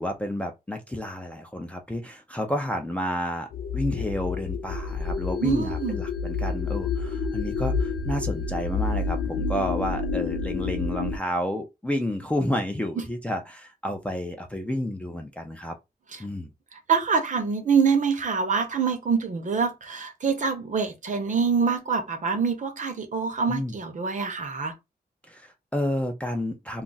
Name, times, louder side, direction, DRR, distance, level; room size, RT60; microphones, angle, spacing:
voice 1, 0.0-3.5 3.7-15.8 16.2-16.5 23.5-23.8 25.3-26.8, equal, 10° left, 0.4 m, -30 dB
sound 1, 3.5-11.2, left 4 dB, 70° left, 0.4 m, -29 dB
voice 2, 5.4-6.0 16.1-16.2 16.7-24.7, right 5 dB, 50° right, 0.7 m, -25 dB
2.4 x 2.0 x 3.9 m
wide cardioid pair, 160°, 16 cm